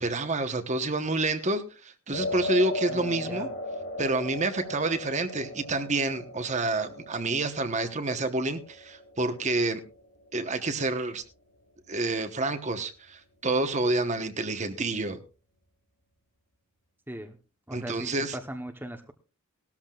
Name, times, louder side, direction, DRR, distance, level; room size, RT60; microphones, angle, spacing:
voice 1, 0.0-3.5 4.0-9.8 10.3-11.2 11.9-15.2 17.7-18.4, right 2 dB, 30° right, 9 dB, 1.1 m, -28 dB
sound 1, 2.1-10.5, left 1 dB, 55° left, 4.1 m, -37 dB
voice 2, 2.9-3.5 17.1-17.4 17.7-19.1, right 1 dB, 10° right, 5 dB, 0.9 m, -39 dB
18.5 x 13.5 x 2.4 m, 0.32 s
head